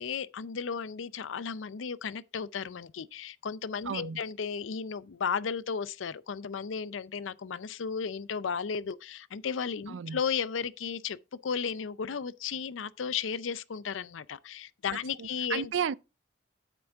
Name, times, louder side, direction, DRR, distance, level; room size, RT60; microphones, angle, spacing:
voice 1, 0.0-11.2 11.4-15.7, left 6 dB, 85° left, 0.5 m, -34 dB
voice 2, 3.9-4.2 9.9-10.2 14.9-15.9, right 7 dB, 75° right, 0.4 m, -33 dB
9.1 x 7.9 x 3.5 m
head